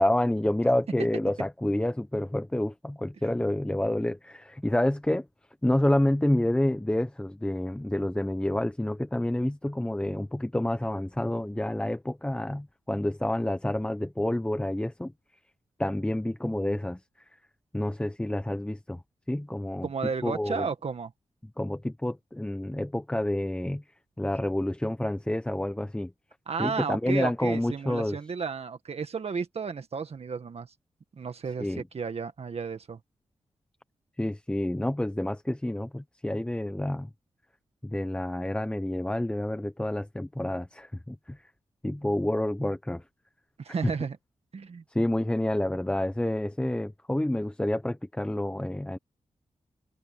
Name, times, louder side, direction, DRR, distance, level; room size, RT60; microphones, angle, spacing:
voice 1, 0.0-5.2 5.6-15.1 15.8-17.0 17.7-19.0 19.3-19.9 20.2-20.7 21.6-23.8 24.2-26.1 26.6-28.2 31.6-31.8 34.2-37.1 37.8-41.4 41.8-43.0 43.8-43.9 44.9-49.0, left 1 dB, 10° left, 0.9 m, -28 dB
voice 2, 19.8-21.1 26.5-30.7 31.2-33.0 43.6-44.2 44.5-44.8, right 5 dB, 60° right, 1.9 m, -33 dB
cardioid pair, 75°, 12 cm